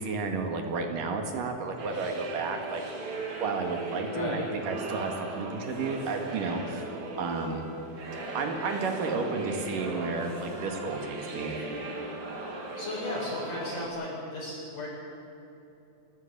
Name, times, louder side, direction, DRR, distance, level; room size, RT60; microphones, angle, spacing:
voice 1, 0.0-2.8 3.4-7.7 8.4-11.6, right 4 dB, 85° right, 4 dB, 3.7 m, -32 dB
sound 1, 1.8-13.9, right 2 dB, 65° right, 3.9 m, -38 dB
voice 2, 4.1-4.5 12.8-14.9, left 2 dB, 75° left, -7 dB, 9.2 m, -35 dB
26.5 x 13.5 x 8.7 m, 2.8 s
omnidirectional pair, 3.7 m